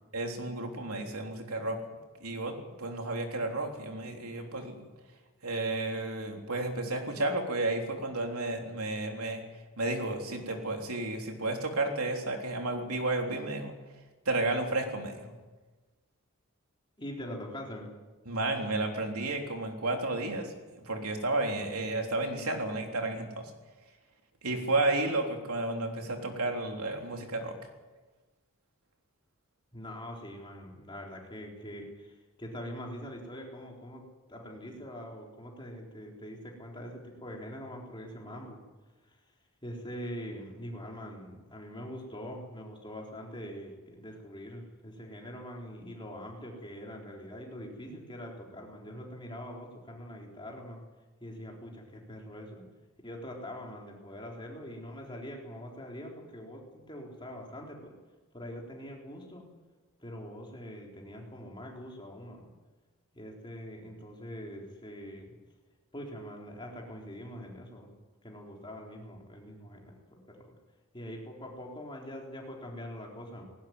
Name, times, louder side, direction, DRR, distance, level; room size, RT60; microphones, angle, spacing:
voice 1, 0.1-1.8 2.2-4.9 5.4-9.4 9.8-13.7 14.3-15.3 18.3-23.4 24.4-27.6, right 2 dB, 90° right, 3 dB, 3.6 m, -32 dB
voice 2, 17.0-17.9 29.7-34.0 34.3-38.6 39.1-39.2 39.6-50.8 51.2-52.6 53.0-57.9 58.3-59.5 60.0-62.5 63.1-65.3 65.9-68.0 68.2-70.5 70.9-73.4, equal, 20° left, -1 dB, 4.0 m, -43 dB
19.5 x 17.0 x 9.6 m, 1.2 s
head